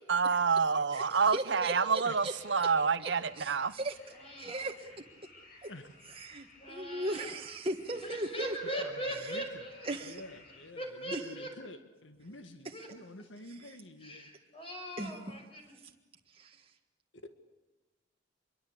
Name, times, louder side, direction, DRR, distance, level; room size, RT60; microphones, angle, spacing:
voice 1, 0.1-3.7, right 5 dB, 65° right, 14 dB, 0.7 m, -28 dB
voice 2, 0.9-2.3 3.0-3.1 3.4-4.0 4.4-5.0 5.6-5.7 6.1-8.8 9.2-9.4 9.8-10.2 11.1-11.2 15.0-15.1 16.3-16.7, right 1 dB, 30° right, 1 dB, 1.6 m, -38 dB
sound 1, 2.1-10.7, left 2 dB, 50° left, 6.4 m, -58 dB
voice 3, 4.2-4.7 6.6-7.3 8.0-9.9 10.8-11.5 12.7-12.9 14.0-15.8, right 1 dB, 30° left, 3 dB, 5.9 m, -40 dB
voice 4, 8.6-9.6 10.0-14.3, left 2 dB, 85° left, 9 dB, 1.9 m, -49 dB
25.5 x 23.0 x 8.3 m, 1.1 s
head